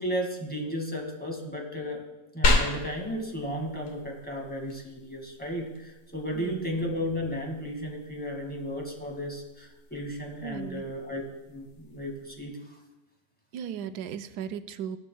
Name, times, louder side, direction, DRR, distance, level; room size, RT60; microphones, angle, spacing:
voice 1, 0.0-2.0 2.3-12.8, equal, 5° left, 0 dB, 1.9 m, -34 dB
sound 1, 2.4-12.4, left 1 dB, 55° left, 1.6 m, -34 dB
voice 2, 6.3-6.8 10.4-10.8 13.5-15.0, right 8 dB, 80° right, 11 dB, 1.2 m, -36 dB
17.0 x 11.5 x 2.3 m, 1.0 s
omnidirectional pair, 1.7 m